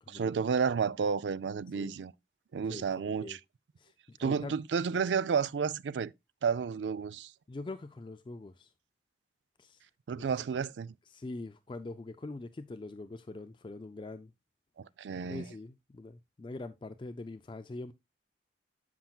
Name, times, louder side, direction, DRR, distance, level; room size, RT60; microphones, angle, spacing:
voice 1, 0.1-2.1 2.5-3.4 4.2-6.1 6.4-7.3 10.1-10.9 14.8-15.5, right 6 dB, 90° right, 0.4 m, -31 dB
voice 2, 2.7-3.4 3.8-4.6 7.5-8.7 9.6-9.8 10.1-10.2 10.5-10.6 11.1-14.3 15.3-17.9, left 2 dB, 30° left, 0.4 m, -43 dB
13.5 x 5.8 x 2.3 m
head